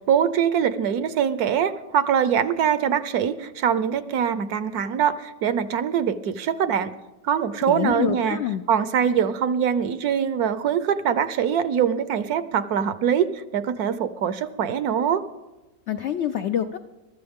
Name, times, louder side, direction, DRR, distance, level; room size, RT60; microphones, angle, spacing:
voice 1, 0.1-6.9 7.2-8.4 8.7-15.2, right 8 dB, 70° right, 13 dB, 1.1 m, -23 dB
voice 2, 7.7-8.6 15.9-16.8, left 10 dB, 75° left, 8 dB, 0.6 m, -26 dB
22.5 x 13.0 x 3.6 m, 1.1 s
omnidirectional pair, 1.8 m